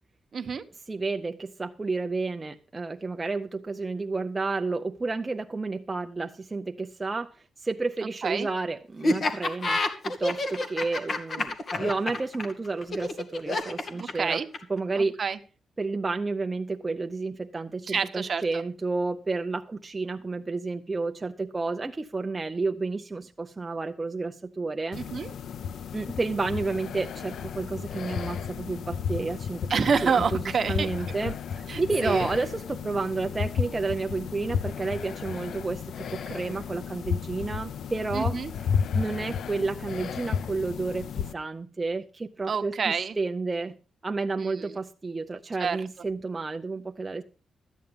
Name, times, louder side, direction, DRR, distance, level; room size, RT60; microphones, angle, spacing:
voice 1, 0.3-0.6 8.2-8.5 13.9-14.5 15.0-15.4 17.9-18.6 24.9-25.3 29.7-31.1 31.7-32.3 38.1-38.5 42.5-43.1 44.4-44.8 45.6-45.8, right 6 dB, 45° right, 1.0 m, -28 dB
voice 2, 0.9-14.4 14.7-15.2 15.8-25.0 25.9-29.7 30.0-30.4 30.7-38.4 38.9-42.7 43.2-43.7 44.0-47.2, right 3 dB, 20° right, 0.6 m, -31 dB
Laughter, 9.0-14.8, left 2 dB, 40° left, 1.8 m, -28 dB
sound 1, 24.9-41.3, left 7 dB, 70° left, 0.5 m, -33 dB
13.0 x 9.2 x 5.1 m
cardioid pair, 125°, 0 cm